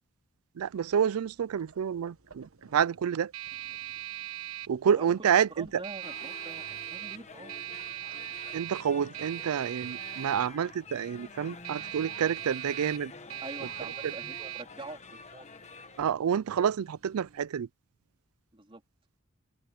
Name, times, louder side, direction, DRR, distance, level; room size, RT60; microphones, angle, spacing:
sound 1, 0.6-17.4, right 13 dB, 70° right, 1.3 m, -42 dB
voice 1, 0.6-3.3 4.7-5.7 8.5-13.1 16.0-17.7, right 8 dB, 85° right, 0.4 m, -28 dB
voice 2, 4.8-7.5 13.4-15.5 18.5-18.8, right 2 dB, 25° right, 3.8 m, -45 dB
sound 2, 6.0-16.1, left 4 dB, 30° left, 1.2 m, -48 dB
open air
head